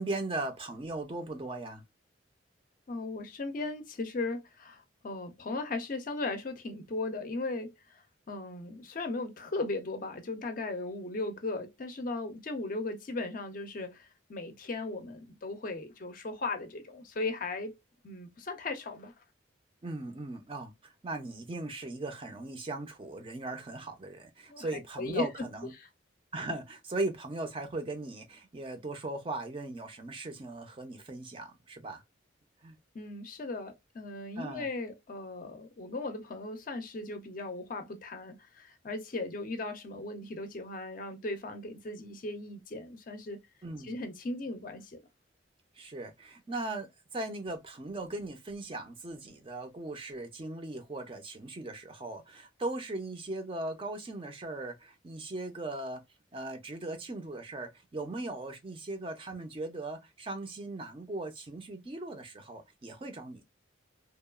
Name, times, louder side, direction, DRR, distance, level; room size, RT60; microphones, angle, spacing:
voice 1, 0.0-1.8 19.8-25.7 26.3-32.0 32.6-32.7 34.4-34.7 43.6-44.0 45.8-56.0 56.3-63.4, right 2 dB, 25° right, 0.4 m, -38 dB
voice 2, 2.9-17.7 18.0-19.1 24.5-24.7 25.0-25.3 25.8-25.9 32.9-43.4 43.8-45.0, left 2 dB, 40° left, 0.4 m, -37 dB
2.8 x 2.2 x 2.3 m
head